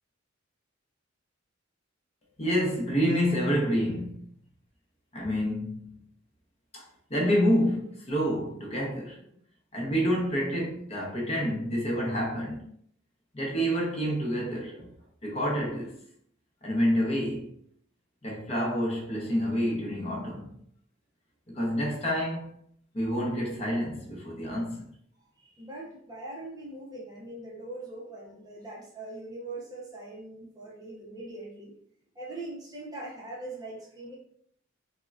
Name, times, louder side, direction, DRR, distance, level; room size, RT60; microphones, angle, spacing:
voice 1, 2.4-4.3 5.1-6.0 6.7-6.8 7.1-9.2 9.7-12.7 13.3-14.9 15.2-16.0 16.6-17.5 18.2-20.5 21.5-22.5 22.9-24.8, equal, 30° left, 0.7 m, -28 dB
voice 2, 25.4-31.7 32.1-34.1, right 2 dB, 20° right, 0.6 m, -41 dB
3.6 x 2.1 x 2.3 m
head